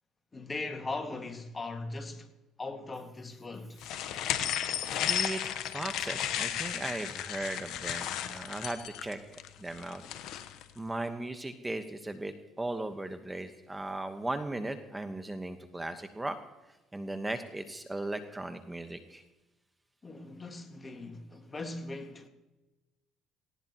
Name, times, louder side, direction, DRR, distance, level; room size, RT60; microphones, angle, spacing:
voice 1, 0.3-2.3 2.6-3.8 20.0-22.3, left 3 dB, 30° left, 2.0 m, -39 dB
sound 1, 3.8-10.6, left 10 dB, 70° left, 1.0 m, -34 dB
voice 2, 5.0-9.2 9.6-10.0 10.8-16.4 16.9-19.2, right 2 dB, 15° right, 1.3 m, -37 dB
18.5 x 17.0 x 3.0 m
hypercardioid pair, 65°, 0 cm